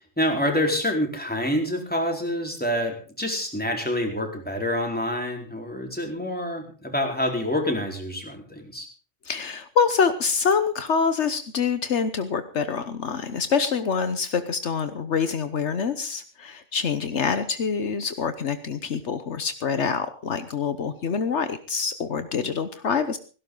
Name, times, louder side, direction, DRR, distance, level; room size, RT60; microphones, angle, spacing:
voice 1, 0.0-8.9, left 1 dB, 5° left, 1 dB, 4.1 m, -27 dB
voice 2, 9.3-23.2, left 6 dB, 70° left, 10 dB, 1.3 m, -26 dB
17.5 x 17.0 x 3.9 m, 0.37 s
omnidirectional pair, 1.2 m